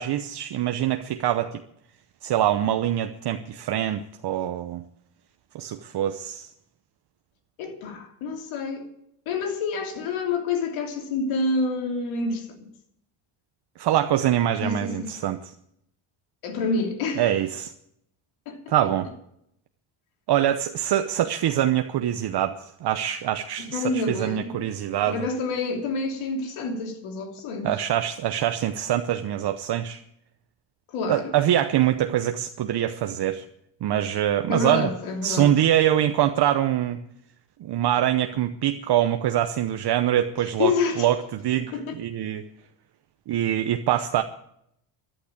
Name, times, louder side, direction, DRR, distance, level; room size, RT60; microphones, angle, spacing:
voice 1, 0.0-1.6 2.2-4.8 5.5-6.5 13.8-15.5 17.2-17.7 18.7-19.1 20.3-25.2 27.6-30.0 31.1-33.4 33.8-34.9 35.2-37.0 37.6-42.4 43.3-44.2, right 11 dB, 55° right, 0.9 m, -24 dB
voice 2, 7.6-8.9 9.3-12.5 14.6-15.1 16.4-17.4 18.5-18.6 23.7-24.6 25.1-27.7 30.9-31.3 34.5-35.5 40.6-41.1 41.7-41.8, left 3 dB, 80° left, 3.1 m, -28 dB
11.5 x 11.5 x 8.6 m
supercardioid pair, 80°, 47 cm